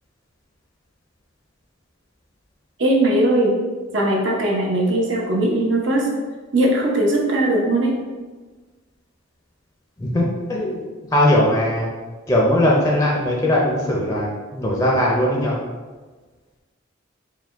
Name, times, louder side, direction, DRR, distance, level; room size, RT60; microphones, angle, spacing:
voice 1, 2.8-3.6 3.9-6.1 6.5-8.0, right 1 dB, 70° right, -1 dB, 0.8 m, -19 dB
voice 2, 10.0-10.8 11.1-11.9 12.3-15.6, left 1 dB, 15° left, -3 dB, 0.5 m, -19 dB
4.8 x 2.2 x 3.4 m, 1.3 s
head